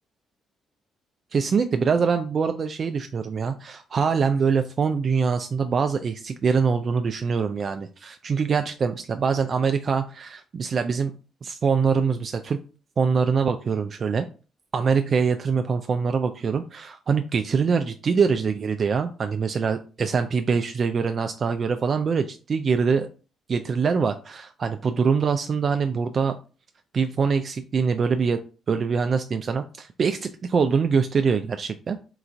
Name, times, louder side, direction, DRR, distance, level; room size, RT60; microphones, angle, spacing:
voice 1, 1.3-12.6 13.0-14.3 14.7-23.1 23.5-26.4 26.9-28.4 28.7-32.0, right 5 dB, 45° right, 7 dB, 0.4 m, -24 dB
4.0 x 2.4 x 4.5 m, 0.35 s
cardioid pair, 90°, 0 cm